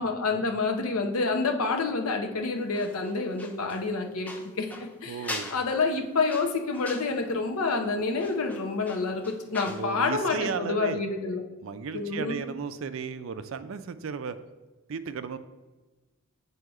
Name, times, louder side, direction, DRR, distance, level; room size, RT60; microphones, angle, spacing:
voice 1, 0.0-4.7 5.0-11.4 11.9-12.4, left 3 dB, 80° left, 3 dB, 0.8 m, -28 dB
sound 1, 2.7-9.9 10.2-10.3, left 2 dB, 5° left, 0.4 m, -42 dB
voice 2, 5.1-5.5 9.7-11.0 11.2-14.4 14.9-15.4, right 5 dB, 65° right, 11 dB, 0.4 m, -35 dB
7.7 x 2.8 x 4.7 m, 1.2 s
head